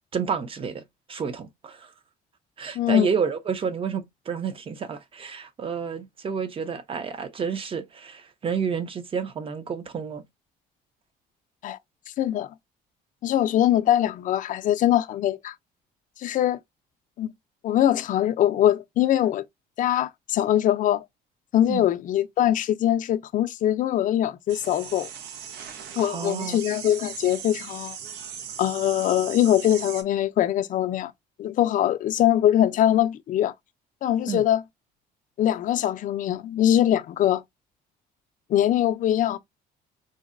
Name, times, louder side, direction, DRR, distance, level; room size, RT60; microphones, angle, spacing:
voice 1, 0.1-0.8 1.1-1.9 2.6-10.2 21.7-21.8 26.0-26.6 34.3-34.4, right 6 dB, 35° right, 0.6 m, -30 dB
voice 2, 2.8-3.1 11.6-11.8 12.2-12.5 13.2-15.5 16.2-16.6 17.2-17.3 17.6-19.4 19.8-21.0 21.5-25.1 26.0-28.0 28.6-31.1 31.4-33.5 34.0-34.6 35.4-37.4 38.5-39.4, left 11 dB, 50° left, 0.4 m, -22 dB
sound 1, 24.5-30.0, right 8 dB, 80° right, 0.6 m, -38 dB
3.8 x 2.1 x 2.4 m
cardioid pair, 110°, 17 cm